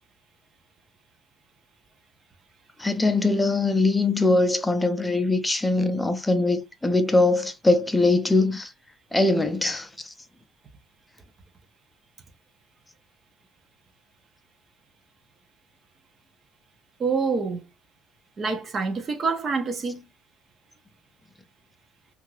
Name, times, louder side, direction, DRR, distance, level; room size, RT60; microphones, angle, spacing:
voice 1, 2.8-8.7 9.1-10.1, left 2 dB, 10° left, 0.5 m, -22 dB
voice 2, 17.0-17.6 18.4-20.0, right 4 dB, 35° right, 0.6 m, -26 dB
2.8 x 2.4 x 3.0 m
cardioid pair, 110°, 0 cm